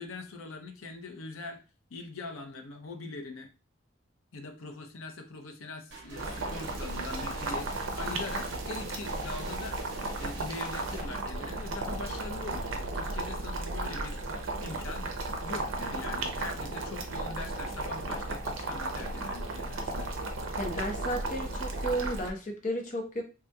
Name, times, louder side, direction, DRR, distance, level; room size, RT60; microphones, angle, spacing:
voice 1, 0.0-1.6 1.9-3.5 4.3-15.1 15.4-20.1, left 3 dB, 85° left, 0.6 m, -42 dB
sound 1, 5.9-11.0, right 2 dB, 60° right, 0.9 m, -46 dB
Boiling, 6.2-22.3, right 2 dB, 75° right, 0.6 m, -35 dB
voice 2, 20.6-23.2, right 1 dB, 40° left, 0.7 m, -33 dB
3.3 x 2.8 x 2.3 m
head